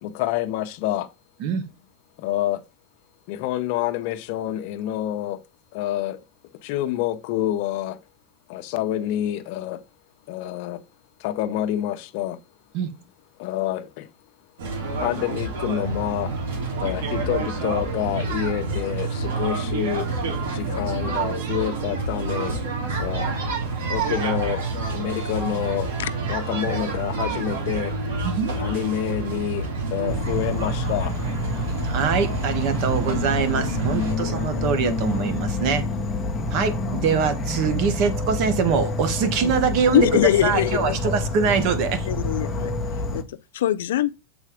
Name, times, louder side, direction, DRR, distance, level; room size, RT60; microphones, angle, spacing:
voice 1, 0.0-1.1 2.2-2.6 3.3-5.4 5.7-6.2 6.6-8.0 8.5-9.8 10.3-10.8 11.2-12.4 13.4-14.1 15.0-16.3 16.8-20.1 20.5-22.6 23.0-23.3 23.9-24.6 24.9-25.9 26.3-27.9 28.6-31.1 34.0-34.7, left 12 dB, 55° left, 0.8 m, -28 dB
sound 1, 14.6-34.1, right 3 dB, 80° right, 2.8 m, -28 dB
voice 2, 28.2-28.5 31.8-35.8 36.5-42.1, right 6 dB, 50° right, 1.3 m, -23 dB
Insect / Frog, 30.1-43.2, left 2 dB, 10° left, 1.0 m, -28 dB
voice 3, 39.9-41.0 42.1-42.7 43.1-43.2 43.5-44.1, left 12 dB, 85° left, 0.5 m, -22 dB
7.2 x 4.2 x 5.0 m
supercardioid pair, 150°, 0 cm